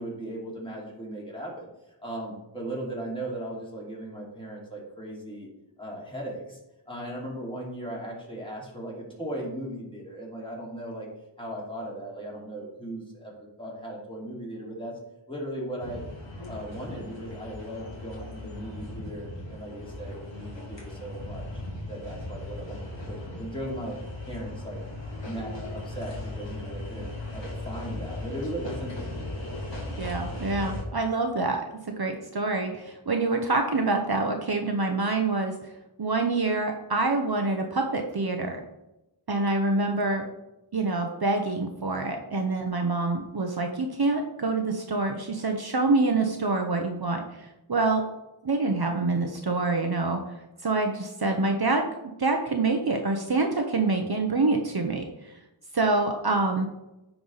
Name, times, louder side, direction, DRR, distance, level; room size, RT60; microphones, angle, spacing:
voice 1, 0.0-1.7 2.0-5.5 5.8-6.6 6.9-11.1 11.4-14.9 15.3-16.0 16.5-21.5 21.9-24.0 24.2-24.8 25.2-29.6, right 1 dB, 10° left, -4 dB, 2.8 m, -37 dB
sound 1, 15.8-30.8, left 2 dB, 60° left, 2.5 m, -37 dB
voice 2, 30.0-31.6 32.0-35.5 36.0-38.6 39.3-40.3 40.7-48.0 48.4-50.2 50.6-51.9 52.2-55.3 55.7-56.7, right 3 dB, 50° right, 3 dB, 0.9 m, -26 dB
9.3 x 4.7 x 4.0 m, 0.93 s
wide cardioid pair, 50°, 49 cm